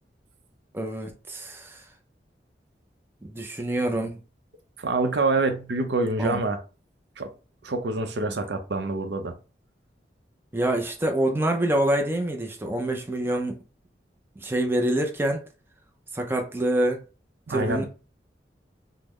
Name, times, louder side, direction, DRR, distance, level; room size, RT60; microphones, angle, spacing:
voice 1, 0.7-1.8 3.2-4.2 6.2-6.4 10.5-13.6 14.4-15.4 16.1-17.0 17.5-17.8, right 1 dB, 15° right, 0.4 m, -26 dB
voice 2, 4.8-6.6 7.2-7.3 7.6-9.3 17.5-17.8, right 3 dB, 75° right, 0.6 m, -26 dB
3.7 x 2.0 x 3.0 m
head